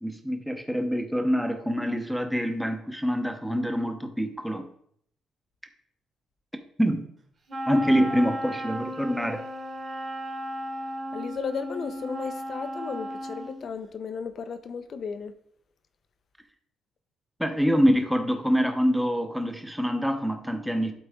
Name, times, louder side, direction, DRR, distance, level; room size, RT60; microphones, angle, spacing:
voice 1, 0.0-4.7 6.8-7.1 7.7-9.4 17.4-20.9, equal, ahead, 0.9 m, -25 dB
Wind instrument woodwind instrument, 7.5-13.6, equal, 35° right, 1.7 m, -35 dB
voice 2, 11.1-15.3, left 6 dB, 45° left, 0.7 m, -34 dB
12.0 x 4.0 x 3.7 m
cardioid pair, 130°, 0 cm